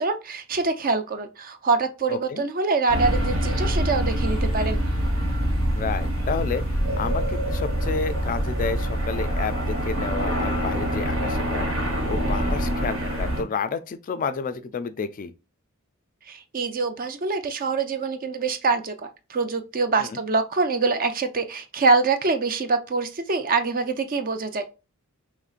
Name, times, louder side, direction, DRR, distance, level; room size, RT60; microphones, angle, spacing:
voice 1, 0.0-4.8 16.3-24.6, right 4 dB, 40° right, 0.5 m, -25 dB
voice 2, 2.1-2.4 5.7-11.7 12.1-15.3 20.0-20.2, left 5 dB, 40° left, 0.3 m, -30 dB
sound 1, 2.9-13.4, equal, 85° right, 1.3 m, -25 dB
sound 2, 6.8-10.4, right 1 dB, 60° right, 1.4 m, -36 dB
5.1 x 3.1 x 2.4 m
head